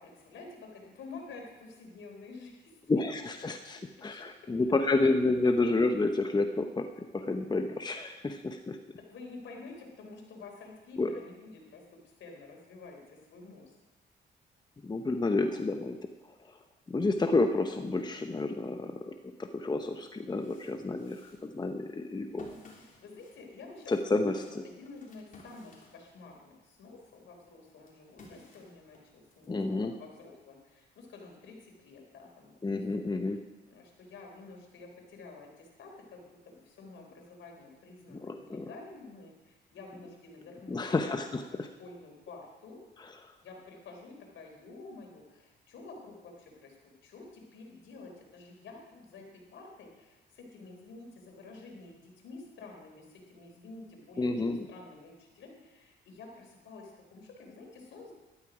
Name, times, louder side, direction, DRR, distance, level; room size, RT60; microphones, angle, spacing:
voice 1, 0.0-2.8 4.0-4.5 5.0-5.2 8.9-13.8 22.8-33.4 33.7-42.9 43.4-46.8 47.0-58.1, left 3 dB, 70° left, 1 dB, 3.6 m, -50 dB
voice 2, 2.9-6.8 7.1-8.8 11.0-11.1 14.8-16.0 16.5-16.6 16.9-19.1 19.4-22.5 23.9-24.4 29.5-29.9 32.6-33.4 38.2-38.7 40.7-41.4 54.2-54.7, left 3 dB, 20° left, 5 dB, 0.9 m, -30 dB
sound 1, 20.1-26.4 26.9-29.5, left 3 dB, 40° left, 3.5 m, -56 dB
12.5 x 12.0 x 5.0 m, 1.1 s
cardioid pair, 90°, 20 cm